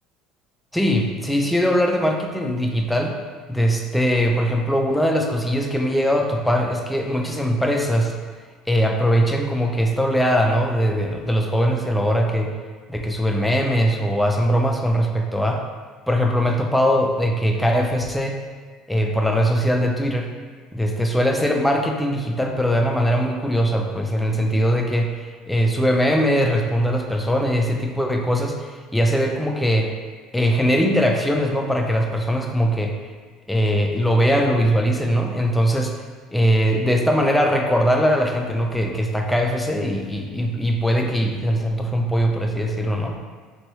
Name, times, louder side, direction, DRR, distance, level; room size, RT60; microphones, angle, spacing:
voice 1, 0.7-3.1 3.5-8.1 8.7-12.5 12.9-15.6 16.1-18.3 18.9-20.3 20.7-29.9 30.3-32.9 33.5-35.9 36.3-43.2, equal, 5° left, 2 dB, 0.4 m, -21 dB
2.9 x 2.7 x 3.0 m, 1.5 s
supercardioid pair, 115°, 0 cm